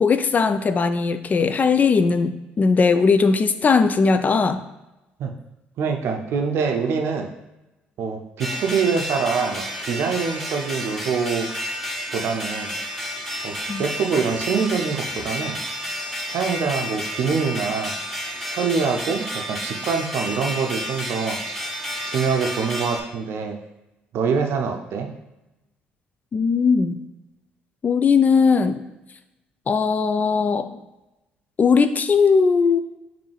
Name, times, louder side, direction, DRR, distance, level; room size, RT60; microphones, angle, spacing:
voice 1, 0.0-4.6 13.7-13.9 26.3-27.0 27.8-28.8 29.7-30.8 31.6-32.8, left 5 dB, 40° left, 11 dB, 0.3 m, -19 dB
voice 2, 5.8-7.3 8.0-11.5 12.1-12.7 13.4-15.6 16.3-18.0 18.5-21.4 22.0-23.6 24.1-25.1, right 5 dB, 65° right, 4 dB, 0.6 m, -24 dB
sound 1, 8.4-23.0, equal, ahead, 0.8 m, -31 dB
5.2 x 2.6 x 3.3 m, 0.98 s
hypercardioid pair, 55°, 4 cm